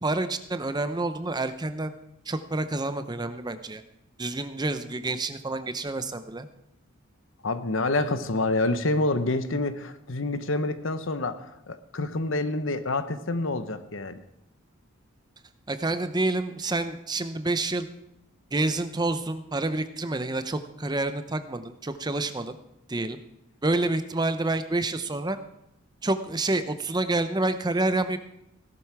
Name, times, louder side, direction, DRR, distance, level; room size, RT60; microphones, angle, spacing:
voice 1, 0.0-1.9 2.3-3.8 4.2-6.5 15.7-17.9 18.5-22.6 22.9-23.2 23.6-25.4 26.0-28.2, right 2 dB, 20° right, 10 dB, 0.7 m, -28 dB
voice 2, 7.4-14.2, left 2 dB, 65° left, 11 dB, 1.0 m, -27 dB
17.0 x 12.0 x 4.8 m, 0.82 s
head